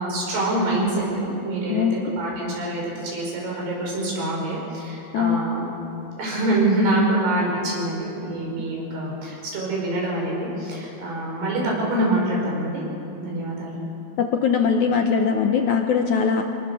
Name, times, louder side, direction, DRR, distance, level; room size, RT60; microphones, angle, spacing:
voice 1, 0.0-1.9 2.2-5.7 6.2-12.8 13.2-13.8, right 1 dB, 75° right, -2 dB, 7.5 m, -25 dB
voice 2, 1.7-2.1 5.1-5.7 8.6-8.8 14.2-16.4, left 6 dB, 70° left, 4 dB, 1.9 m, -21 dB
27.0 x 19.5 x 7.0 m, 2.7 s
omnidirectional pair, 4.7 m